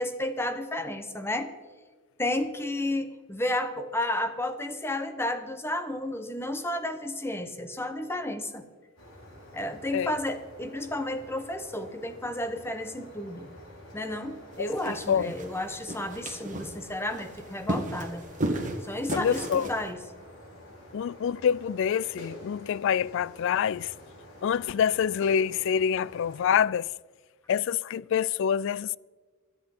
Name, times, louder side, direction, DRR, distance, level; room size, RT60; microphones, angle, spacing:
voice 1, 0.0-1.5 2.2-8.6 9.5-13.5 13.9-18.2 18.8-20.0, left 1 dB, 10° left, 1.0 m, -32 dB
sound 1, 9.0-26.6, left 1 dB, 90° left, 5.2 m, -49 dB
sound 2, 14.5-19.9, right 1 dB, 35° right, 2.0 m, -35 dB
voice 2, 14.6-15.3 19.1-19.7 20.9-23.9 24.4-26.9 27.5-29.0, left 8 dB, 60° left, 0.3 m, -26 dB
23.5 x 8.4 x 4.3 m
head